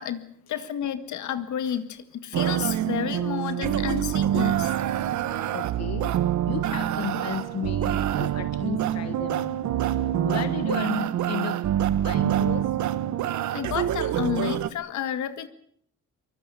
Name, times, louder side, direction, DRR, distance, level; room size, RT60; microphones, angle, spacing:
voice 1, 0.0-4.7 13.5-15.5, left 9 dB, 75° left, 11 dB, 2.0 m, -31 dB
sound 1, 2.3-14.7, right 11 dB, 70° right, 1.3 m, -26 dB
voice 2, 5.5-6.1 6.4-9.6 10.2-11.6 11.9-12.6, left 8 dB, 60° left, 10 dB, 1.5 m, -34 dB
23.5 x 21.5 x 7.0 m, 0.63 s
cardioid pair, 90°, 30 cm